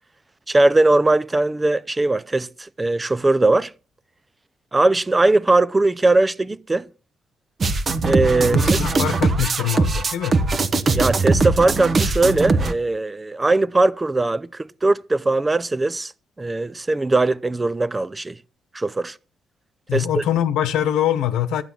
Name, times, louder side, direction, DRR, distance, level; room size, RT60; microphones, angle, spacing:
voice 1, 0.5-3.7 4.7-6.9 8.0-8.8 10.9-16.1 16.4-18.4 18.7-19.2 19.9-20.2, right 2 dB, 20° right, 0.6 m, -20 dB
sound 1, 7.6-12.7, right 3 dB, 40° right, 1.2 m, -20 dB
voice 2, 8.5-10.4 19.9-21.6, left 11 dB, 90° left, 1.2 m, -23 dB
12.0 x 9.1 x 6.1 m
cardioid pair, 90°, 0 cm